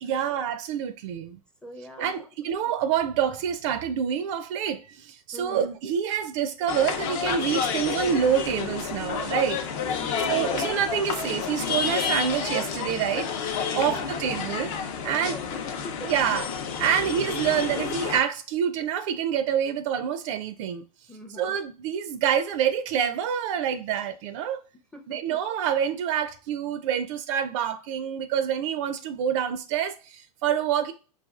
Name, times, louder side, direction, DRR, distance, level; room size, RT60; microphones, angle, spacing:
voice 1, 0.0-1.4 2.0-9.6 10.2-13.3 13.7-14.7 15.0-15.4 16.0-16.5 16.8-20.8 21.3-24.6 25.1-30.9, right 8 dB, 50° right, 0.4 m, -27 dB
voice 2, 1.6-2.1 5.3-5.7 10.0-10.5 13.7-14.1 15.1-16.1 21.1-21.6 24.9-25.4, left 1 dB, 5° left, 0.5 m, -42 dB
sound 1, 6.7-18.2, left 6 dB, 50° left, 0.7 m, -30 dB
4.8 x 2.4 x 2.3 m
hypercardioid pair, 115°, 21 cm